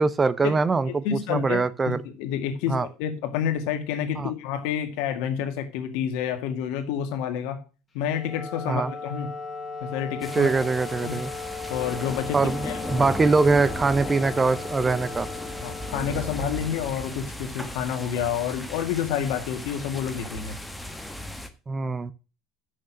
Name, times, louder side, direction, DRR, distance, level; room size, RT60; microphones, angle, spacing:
voice 1, 0.0-2.0 2.7-2.9 4.2-4.3 8.7-8.9 10.3-11.3 12.3-15.3 21.7-22.1, right 4 dB, 20° right, 0.6 m, -23 dB
voice 2, 0.9-1.6 1.9-7.6 7.9-9.3 9.9-10.5 11.0-11.2 11.7-12.4 12.6-13.1 15.6-20.6, left 8 dB, 75° left, 1.9 m, -29 dB
Wind instrument woodwind instrument, 7.9-17.3, left 4 dB, 25° left, 2.2 m, -37 dB
sound 1, 10.2-21.5, left 1 dB, 5° left, 1.1 m, -36 dB
6.5 x 6.4 x 6.2 m
supercardioid pair, 125°, 0 cm